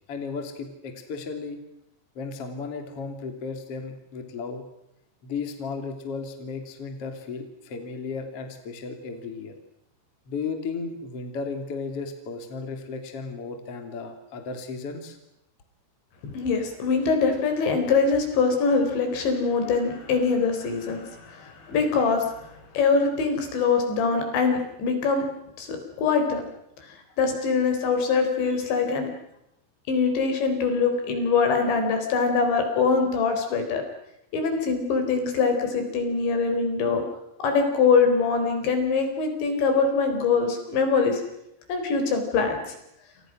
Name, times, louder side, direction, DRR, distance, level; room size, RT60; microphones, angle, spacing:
voice 1, 0.1-1.6 2.1-4.6 5.2-9.5 10.3-15.2, left 4 dB, 35° left, 6 dB, 3.2 m, -34 dB
voice 2, 16.3-22.3 22.7-25.3 25.6-26.4 27.2-29.1 29.9-33.8 34.3-37.0 37.4-41.2 41.7-42.7, left 4 dB, 65° left, 5 dB, 6.4 m, -23 dB
28.5 x 28.5 x 6.3 m, 0.81 s
omnidirectional pair, 5.8 m